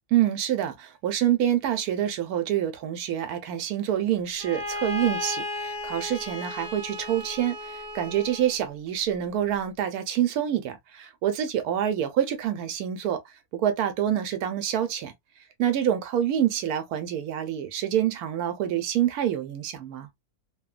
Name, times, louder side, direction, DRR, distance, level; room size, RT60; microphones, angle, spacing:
voice 1, 0.1-13.2 13.5-15.1 15.6-20.1, right 10 dB, 75° right, 1.1 m, -26 dB
Bowed string instrument, 4.4-8.6, left 2 dB, 20° right, 1.1 m, -35 dB
2.9 x 2.1 x 2.3 m
omnidirectional pair, 1.7 m